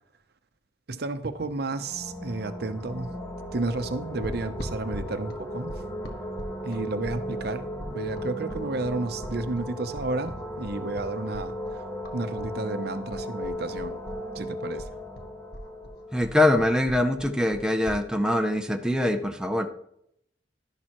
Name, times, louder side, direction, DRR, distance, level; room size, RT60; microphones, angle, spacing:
voice 1, 0.9-3.2 3.5-5.8 6.6-11.9 12.1-14.0 14.3-14.9, right 2 dB, 60° right, 10 dB, 0.7 m, -32 dB
sound 1, 1.7-17.2, equal, 15° left, 1.4 m, -36 dB
sound 2, 4.2-12.5 12.8-14.5 14.8-18.0, equal, 60° left, 1.4 m, -40 dB
voice 2, 16.1-19.7, left 1 dB, 5° right, 5 dB, 0.5 m, -23 dB
11.5 x 10.5 x 3.0 m, 0.74 s
head